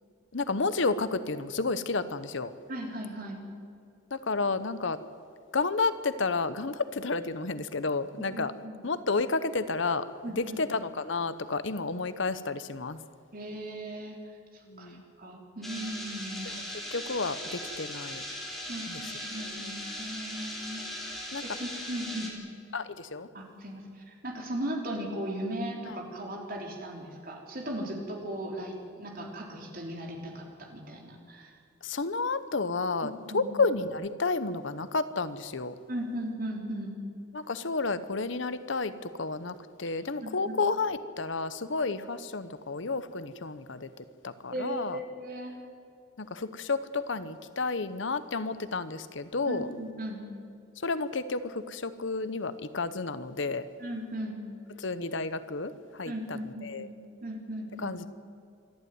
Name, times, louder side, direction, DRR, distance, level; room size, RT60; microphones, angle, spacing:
voice 1, 0.3-2.5 4.1-5.0 5.5-8.5 8.8-10.1 10.4-13.0 14.7-15.0 16.9-18.2 18.9-19.0 21.3-21.4 22.7-23.3 31.8-35.7 37.3-43.9 44.2-45.0 46.2-49.7 50.8-53.6 54.8-55.7 56.0-56.4 56.6-56.9 57.8-58.1, left 3 dB, 65° left, 13 dB, 0.9 m, -31 dB
voice 2, 2.7-3.4 8.2-8.8 10.2-10.4 13.3-14.2 14.5-16.6 18.7-22.3 23.3-31.5 33.0-33.4 35.9-36.9 40.2-40.5 44.5-45.5 49.4-50.2 53.8-54.4 56.0-56.9 57.2-58.0, right 1 dB, 45° right, 1 dB, 3.8 m, -37 dB
sound 1, 15.6-22.3, equal, ahead, 3.6 m, -39 dB
26.5 x 12.5 x 9.5 m, 2.4 s
head